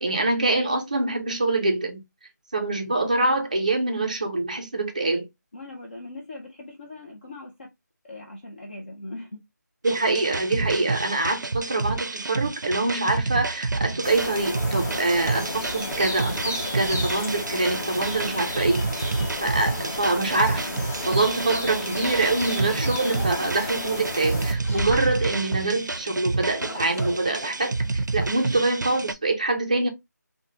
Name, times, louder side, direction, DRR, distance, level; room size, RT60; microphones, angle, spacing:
voice 1, 0.0-2.0 2.5-5.3 9.8-18.9 19.4-29.9, right 2 dB, 25° right, 0.4 m, -25 dB
voice 2, 5.5-7.7 8.0-9.4, left 2 dB, 35° left, 0.5 m, -40 dB
sound 1, 9.8-29.1, right 3 dB, 80° right, 0.4 m, -29 dB
sound 2, 14.0-24.5, left 2 dB, 10° left, 0.9 m, -33 dB
sound 3, 20.5-21.7 22.1-23.6 24.4-25.4 26.4-28.6, left 2 dB, 50° left, 0.9 m, -38 dB
3.2 x 2.1 x 2.7 m
figure-of-eight pair, 175°, 10 cm